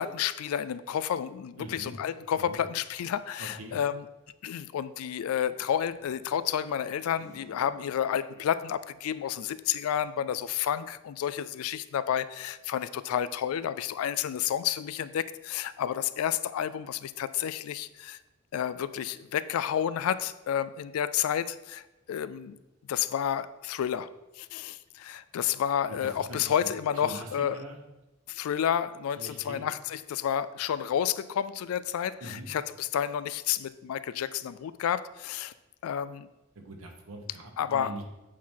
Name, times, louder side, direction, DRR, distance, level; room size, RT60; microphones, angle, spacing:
voice 1, 0.0-4.1 4.4-18.2 18.5-22.6 22.9-24.1 24.4-27.6 28.3-35.5 35.8-36.3 37.6-38.0, left 9 dB, 85° left, 15 dB, 0.3 m, -30 dB
voice 2, 1.6-2.0 2.4-2.6 3.4-3.8 25.9-26.6 27.0-27.3 27.5-27.8 29.2-29.7 32.2-32.5 36.5-38.0, right 1 dB, 90° right, 3 dB, 1.1 m, -43 dB
sound 1, 5.8-9.5 9.8-11.0, equal, 30° left, 1.5 m, -58 dB
8.4 x 4.4 x 3.7 m, 1.0 s
head